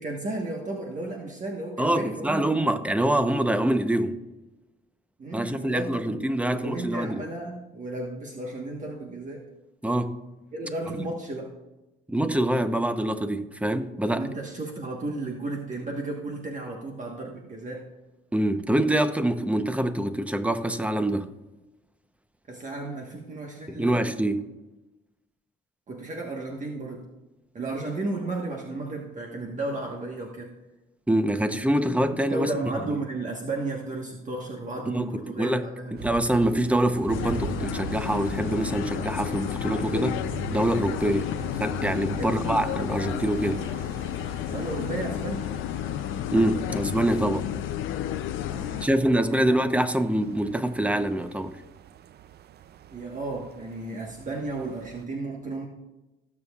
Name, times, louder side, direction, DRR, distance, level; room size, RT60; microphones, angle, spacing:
voice 1, 0.0-2.5 5.2-9.5 10.5-11.5 14.1-17.9 22.5-24.0 25.9-27.1 27.5-30.5 32.1-36.0 42.2-42.6 44.5-45.5 48.4-49.5 52.9-55.7, right 2 dB, 40° right, 1.3 m, -34 dB
voice 2, 1.8-4.2 5.3-7.1 9.8-10.2 12.1-14.3 18.3-21.3 23.7-24.4 31.1-32.5 32.9-33.0 34.9-35.1 35.4-35.6 35.9-40.2 40.5-43.7 46.3-47.5 48.8-51.5, right 1 dB, 5° right, 0.8 m, -25 dB
sound 1, 36.0-55.0, right 10 dB, 55° right, 0.4 m, -42 dB
sound 2, 37.1-48.9, left 12 dB, 90° left, 0.5 m, -31 dB
19.5 x 7.1 x 2.4 m
cardioid pair, 90°, 20 cm